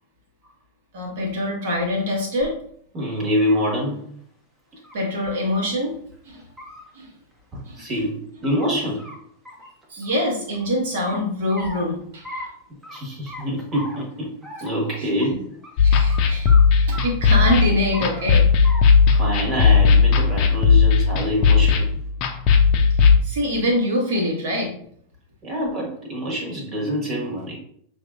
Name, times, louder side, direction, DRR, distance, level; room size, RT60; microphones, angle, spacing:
voice 1, 0.9-2.6 4.9-6.0 6.2-6.4 6.9-7.1 7.7-8.0 9.9-12.5 15.0-15.1 15.8-18.5 22.9-24.7, left 1 dB, 55° right, -1 dB, 1.5 m, -25 dB
sound 1, 2.4-2.5 3.1-3.8 4.8-4.9 5.3-5.4 5.8-5.9 6.4-6.8 8.0-8.6 9.0-9.1 9.4-10.7 11.1-11.8 12.2-12.5 12.8-13.0 13.3-14.1 14.4-14.8 15.2-15.3 15.6-15.7 16.1-16.2 16.5-16.6 16.9-17.6 17.9-18.3 18.6-18.8 19.1-19.5 19.9-20.4 21.2-21.7, left 1 dB, 10° right, 0.9 m, -38 dB
voice 2, 2.9-4.0 7.5-9.0 12.9-14.3 14.6-15.4 19.2-22.0 25.4-27.6, equal, 35° right, -1 dB, 1.7 m, -25 dB
sound 2, 15.8-23.2, left 5 dB, 40° left, 0.6 m, -16 dB
6.4 x 2.7 x 2.5 m, 0.65 s
figure-of-eight pair, 90°, 0 cm